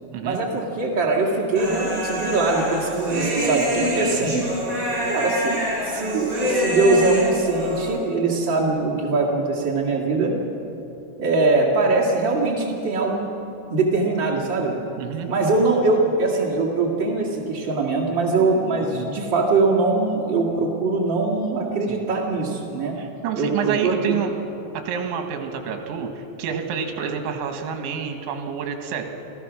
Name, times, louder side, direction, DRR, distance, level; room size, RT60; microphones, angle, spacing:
voice 1, 0.2-4.5 5.1-10.3 11.2-13.3 13.7-14.8 15.3-23.0 23.3-24.1, right 3 dB, 90° right, -4 dB, 1.0 m, -22 dB
Human voice, 1.6-8.0, equal, 25° right, 5.7 m, -25 dB
voice 2, 15.0-15.3 18.8-19.1 21.9-22.0 23.0-24.3 24.7-29.0, right 7 dB, 70° right, 5 dB, 3.7 m, -28 dB
27.5 x 17.0 x 6.2 m, 3.0 s
omnidirectional pair, 5.8 m